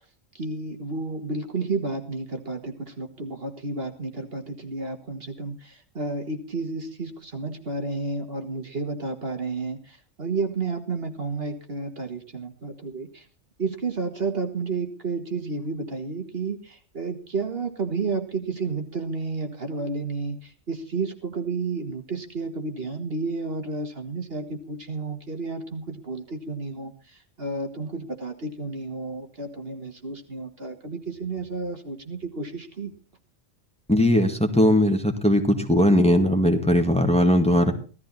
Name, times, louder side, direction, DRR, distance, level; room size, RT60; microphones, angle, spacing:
voice 1, 0.3-13.2 13.6-32.9, right 3 dB, 50° right, 6 dB, 2.0 m, -31 dB
voice 2, 33.9-37.7, left 1 dB, 5° left, 4 dB, 1.9 m, -19 dB
16.0 x 13.5 x 4.2 m, 0.36 s
omnidirectional pair, 1.3 m